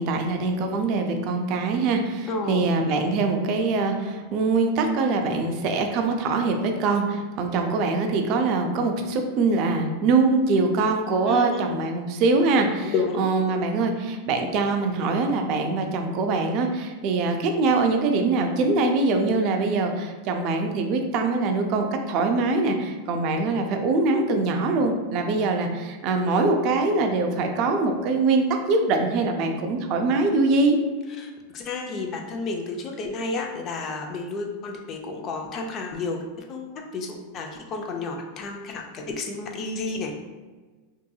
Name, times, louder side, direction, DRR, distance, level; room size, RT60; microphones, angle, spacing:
voice 1, 0.0-30.8, right 3 dB, 50° right, 4 dB, 0.4 m, -23 dB
voice 2, 2.3-2.7 11.3-11.8 12.8-13.3 31.1-36.2 36.5-40.1, left 3 dB, 40° left, 2 dB, 0.4 m, -31 dB
2.8 x 2.6 x 2.3 m, 1.3 s
hypercardioid pair, 115°, 0 cm